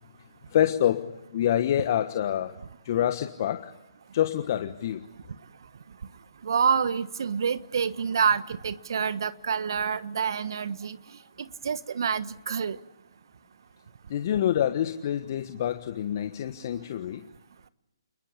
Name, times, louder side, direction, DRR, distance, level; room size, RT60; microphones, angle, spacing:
voice 1, 0.5-2.5 2.8-3.7 4.1-5.0 14.1-17.2, left 11 dB, 40° left, 1.4 m, -26 dB
voice 2, 6.4-11.0 11.4-12.8, right 6 dB, 55° right, 1.3 m, -27 dB
29.5 x 21.5 x 8.4 m
figure-of-eight pair, 140°, 3 cm